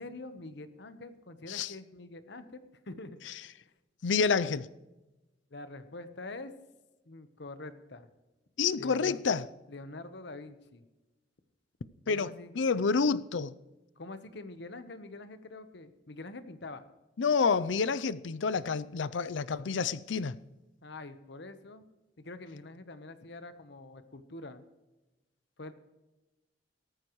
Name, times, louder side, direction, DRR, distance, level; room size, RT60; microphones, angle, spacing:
voice 1, 0.0-3.2 5.5-6.5 7.1-8.1 8.8-9.2 9.7-10.8 12.1-12.5 14.0-16.8 20.8-21.8 22.2-24.6 25.6-25.7, left 2 dB, 65° left, 1.1 m, -45 dB
voice 2, 4.0-4.7 8.6-9.5 12.1-12.3 12.5-13.5 17.2-20.4, left 5 dB, 90° left, 0.5 m, -28 dB
18.0 x 14.0 x 3.1 m
head